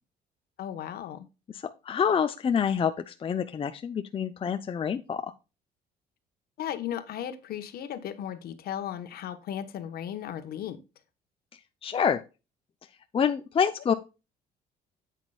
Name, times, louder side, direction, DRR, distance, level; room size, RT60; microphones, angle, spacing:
voice 1, 0.6-1.3 6.6-10.8, left 10 dB, 65° left, 1.3 m, -36 dB
voice 2, 1.5-5.3 11.8-12.2 13.1-13.9, left 7 dB, 35° left, 0.7 m, -27 dB
9.6 x 8.3 x 2.4 m
cardioid pair, 110°, 17 cm